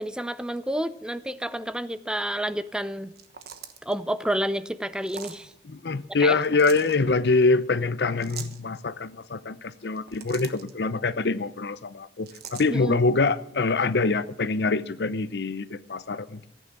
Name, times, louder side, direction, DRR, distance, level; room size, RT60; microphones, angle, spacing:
voice 1, 0.0-3.1 3.9-5.5 6.2-6.4 12.7-13.0, right 1 dB, 5° right, 14 dB, 0.4 m, -29 dB
sound 1, 3.1-3.9 5.0-5.4 6.4-6.9 8.2-8.6 9.9-10.7 12.3-12.7, right 8 dB, 60° right, 1.2 m, -41 dB
voice 2, 5.6-16.5, left 3 dB, 65° left, 15 dB, 0.7 m, -25 dB
14.5 x 9.3 x 7.3 m, 0.78 s
head